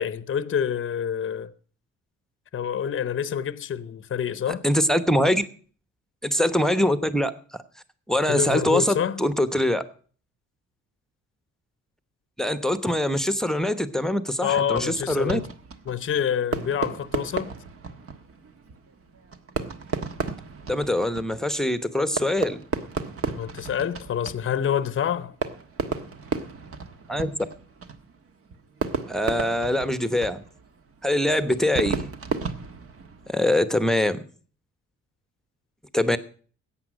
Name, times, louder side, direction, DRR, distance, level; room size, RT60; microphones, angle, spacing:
voice 1, 0.0-1.5 2.5-4.6 8.3-9.2 14.4-15.4 15.9-17.5 23.4-25.3, left 8 dB, 40° left, 0.8 m, -27 dB
voice 2, 4.5-5.4 6.2-7.3 8.1-9.8 12.4-15.4 20.7-22.6 27.1-27.3 29.1-30.4 31.0-32.0 33.3-34.2 35.9-36.2, left 1 dB, ahead, 1.0 m, -23 dB
Fireworks, 14.7-33.5, right 5 dB, 50° right, 1.4 m, -34 dB
14.0 x 8.8 x 6.2 m
cardioid pair, 90°, 30 cm